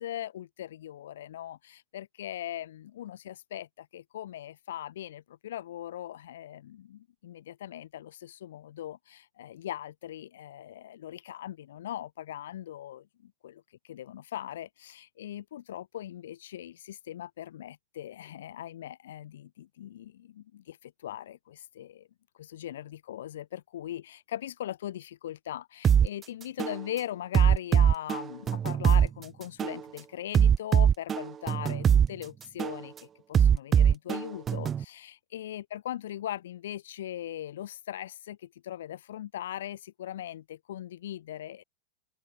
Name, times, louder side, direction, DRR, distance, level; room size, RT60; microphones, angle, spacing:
voice 1, 0.0-13.1 13.4-13.5 13.8-22.1 22.3-41.6, left 12 dB, 85° left, 5.5 m, -40 dB
sound 1, 25.8-26.1 26.6-26.8 27.3-29.1 29.6-29.8 30.3-32.1 32.6-32.8 33.3-34.8, right 8 dB, 25° right, 0.5 m, -22 dB
supercardioid pair, 125°, 0 cm